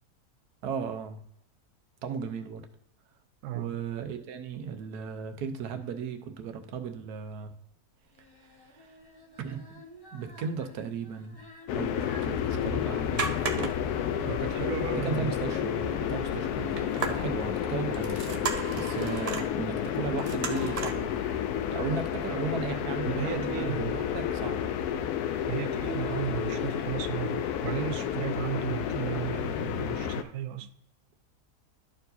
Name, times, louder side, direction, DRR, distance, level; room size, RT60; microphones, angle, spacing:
voice 1, 0.6-1.2 2.0-2.7 3.5-7.5 8.4-9.0 9.4-9.7 10.1-11.4 11.7-13.3 14.9-16.8 17.1-18.5 18.7-21.2 21.7-24.7, right 6 dB, 85° right, 1.3 m, -36 dB
voice 2, 3.4-3.8 14.2-15.3 23.0-23.9 25.5-30.7, right 12 dB, 70° right, 0.8 m, -34 dB
Singing, 8.1-26.9, left 2 dB, 15° left, 1.2 m, -49 dB
sound 1, 11.7-30.2, left 9 dB, 80° left, 1.1 m, -31 dB
sound 2, 13.1-14.0 14.3-14.4 14.8-14.9 16.7-17.5 17.9-19.5 20.2-21.0 21.5-21.6, right 4 dB, 45° right, 0.5 m, -34 dB
12.0 x 4.6 x 2.6 m
omnidirectional pair, 1.6 m